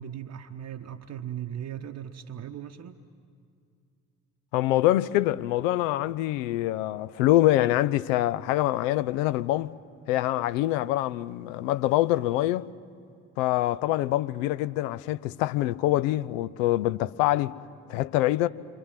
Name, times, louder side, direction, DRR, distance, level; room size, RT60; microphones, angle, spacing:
voice 1, 0.0-3.0, right 10 dB, 40° right, 0.9 m, -38 dB
voice 2, 4.5-9.7 10.1-12.7 13.4-17.6 17.9-18.5, left 15 dB, 65° left, 0.7 m, -25 dB
28.0 x 25.0 x 7.5 m
figure-of-eight pair, 45°, 42 cm